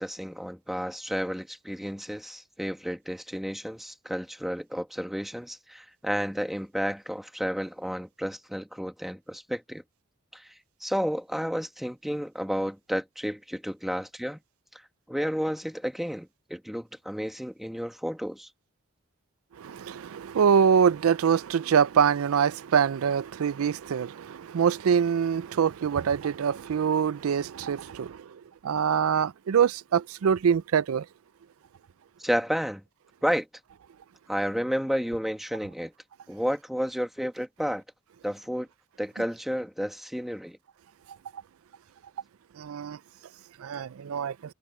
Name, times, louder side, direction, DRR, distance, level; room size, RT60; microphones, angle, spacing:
voice 1, 0.0-9.8 10.3-10.5 10.8-14.4 14.7-14.8 15.1-18.5 32.2-32.8 33.2-33.5 34.3-35.9 36.3-37.8 38.2-38.7 39.0-40.6, equal, ahead, 1.5 m, -31 dB
voice 2, 19.6-28.2 28.6-31.0 42.6-43.0 43.6-44.3, right 7 dB, 85° right, 0.4 m, -24 dB
head